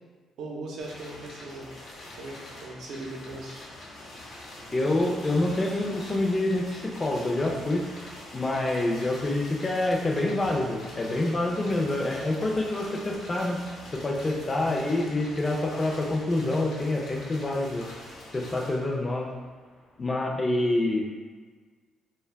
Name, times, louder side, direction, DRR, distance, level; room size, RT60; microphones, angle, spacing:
voice 1, 0.4-1.7 2.2-3.6 14.2-14.6 18.5-18.7, right 2 dB, 75° right, -2 dB, 0.6 m, -40 dB
sound 1, 0.8-20.2, left 1 dB, 65° left, 0.7 m, -44 dB
voice 2, 4.7-7.9 8.3-13.6 13.9-17.9 18.3-19.3 20.0-21.1, left 2 dB, 30° left, 0 dB, 0.5 m, -27 dB
2.2 x 2.2 x 3.3 m, 1.5 s
cardioid pair, 90°, 0 cm